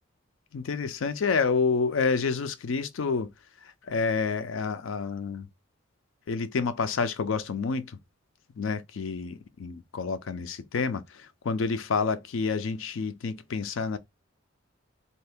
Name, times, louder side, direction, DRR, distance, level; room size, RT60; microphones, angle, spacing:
voice 1, 0.5-3.3 3.9-5.5 6.3-7.9 8.6-14.0, left 5 dB, 70° left, 0.4 m, -28 dB
2.7 x 2.5 x 3.4 m
head